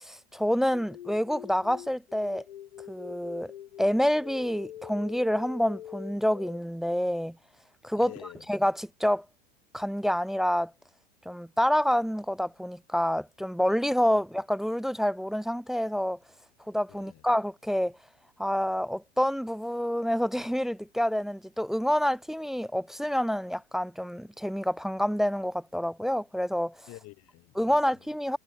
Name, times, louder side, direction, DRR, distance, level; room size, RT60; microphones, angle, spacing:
voice 1, 0.0-2.4 2.9-3.5 3.8-7.4 7.8-8.1 8.5-9.3 9.7-10.7 11.3-16.2 16.7-17.9 18.4-26.8 27.6-28.4, equal, ahead, 0.3 m, -28 dB
sound 1, 0.7-6.6, left 11 dB, 85° left, 3.3 m, -44 dB
voice 2, 8.0-8.5 16.9-17.2 26.9-28.2, left 18 dB, 50° left, 3.6 m, -48 dB
hypercardioid pair, 100°, 31 cm